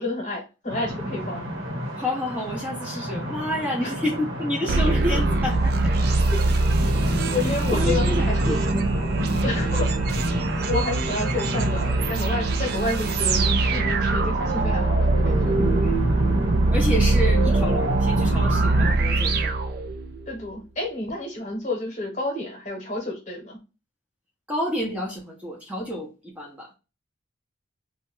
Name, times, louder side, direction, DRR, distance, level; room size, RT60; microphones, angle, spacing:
voice 1, 0.0-1.4 3.8-3.9 6.3-6.4 6.9-8.6 9.4-9.9 10.6-15.6 20.3-23.6, left 2 dB, 40° left, 1.0 m, -30 dB
sound 1, 0.7-18.9, equal, 80° right, 1.0 m, -29 dB
voice 2, 2.0-5.7 7.7-8.6 15.8-16.0 16.7-19.6 24.5-26.7, equal, 5° right, 0.6 m, -29 dB
sound 2, 4.7-20.3, right 2 dB, 50° right, 0.4 m, -23 dB
2.8 x 2.2 x 3.0 m
head